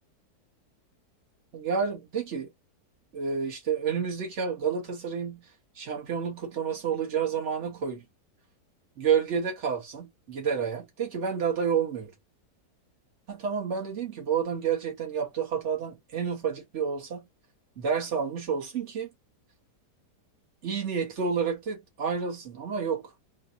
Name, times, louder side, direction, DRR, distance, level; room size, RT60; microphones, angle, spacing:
voice 1, 1.5-2.5 3.1-5.5 5.8-8.0 9.0-12.1 13.3-17.3 17.8-19.1 20.6-23.1, right 6 dB, 45° right, 1.8 m, -29 dB
3.6 x 2.6 x 4.0 m
omnidirectional pair, 1.8 m